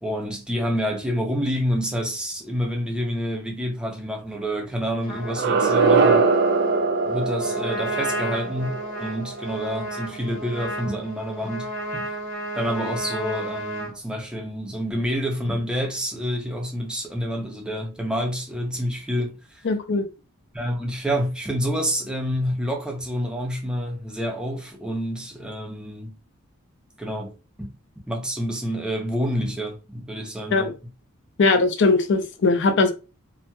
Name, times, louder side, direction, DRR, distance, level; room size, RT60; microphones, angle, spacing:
voice 1, 0.0-6.3 7.1-12.1 12.5-19.6 20.5-26.2 27.0-27.3 27.6-27.7 28.1-30.8, equal, 5° right, 0.5 m, -28 dB
Trumpet, 5.0-13.9, right 1 dB, 35° left, 1.3 m, -33 dB
sound 1, 5.2-10.2, right 4 dB, 50° right, 0.4 m, -22 dB
voice 2, 19.6-20.1 30.5-30.7 31.4-32.9, left 3 dB, 55° left, 0.5 m, -20 dB
2.9 x 2.6 x 2.2 m
head